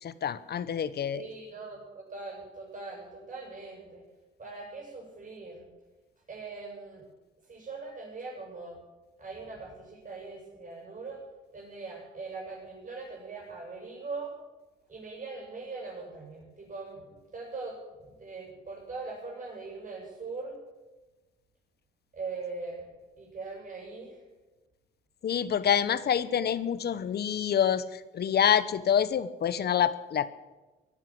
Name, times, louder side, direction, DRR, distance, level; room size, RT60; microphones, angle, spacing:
voice 1, 0.0-1.3 25.2-30.3, left 9 dB, 55° left, 16 dB, 1.0 m, -27 dB
voice 2, 1.1-4.0 4.4-5.7 6.3-7.0 7.5-8.8 9.2-11.2 11.5-14.4 14.9-20.6 22.1-22.9 23.2-24.2, right 3 dB, 40° right, -1 dB, 7.7 m, -41 dB
16.5 x 11.0 x 7.7 m, 1.2 s
cardioid pair, 90°, 20 cm